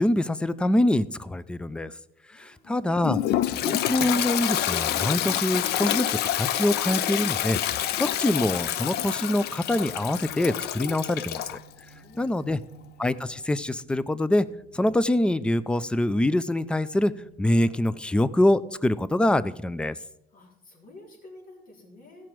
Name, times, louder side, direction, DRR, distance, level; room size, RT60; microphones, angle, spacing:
voice 1, 0.0-1.9 2.4-3.2 3.6-11.6 12.2-12.6 13.0-14.5 14.7-17.1 17.4-20.0, left 1 dB, 5° left, 16 dB, 0.4 m, -25 dB
voice 2, 2.3-3.1 12.0-12.7 20.3-22.3, left 2 dB, 55° left, -1 dB, 3.7 m, -50 dB
sound 1, 2.9-18.7, right 4 dB, 15° right, 1.2 m, -55 dB
Toilet flush, 3.0-11.6, left 12 dB, 75° left, 0.5 m, -27 dB
16.0 x 6.1 x 4.5 m, 0.84 s
cardioid pair, 110°, 17 cm